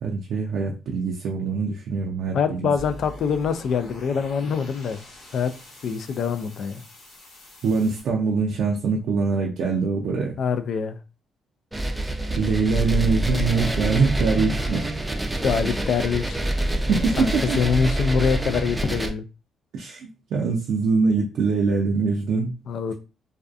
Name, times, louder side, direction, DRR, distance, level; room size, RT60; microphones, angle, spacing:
voice 1, 0.0-2.7 7.6-10.4 12.4-14.9 16.9-17.6 19.7-22.6, right 4 dB, 75° right, 0.4 m, -23 dB
voice 2, 2.3-5.0 5.3-5.5 5.8-6.8 10.4-11.0 15.4-16.4 17.2-19.3 22.7-22.9, left 6 dB, 65° left, 0.3 m, -24 dB
sound 1, 2.8-8.0, left 1 dB, 85° left, 1.0 m, -45 dB
sound 2, 11.7-19.1, right 1 dB, 10° right, 0.5 m, -26 dB
2.5 x 2.3 x 2.4 m
cardioid pair, 90°, 0 cm